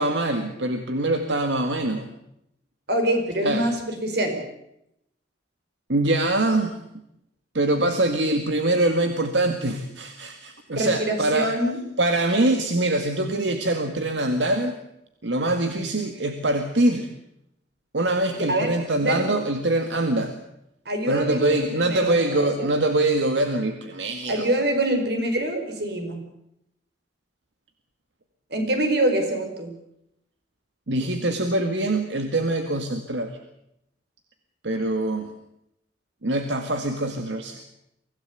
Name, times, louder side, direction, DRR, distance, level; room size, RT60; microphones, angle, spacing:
voice 1, 0.0-2.1 3.4-3.7 5.9-6.8 7.5-11.5 12.0-14.8 15.2-17.1 17.9-20.3 21.1-24.5 30.9-33.3 34.6-35.3 36.2-37.6, right 2 dB, 85° right, 6 dB, 1.9 m, -24 dB
voice 2, 2.9-4.4 10.7-11.8 18.3-18.7 19.0-19.3 20.9-22.7 24.3-26.2 28.5-29.7, right 1 dB, 65° right, 5 dB, 5.2 m, -25 dB
24.5 x 16.5 x 8.3 m, 0.79 s
head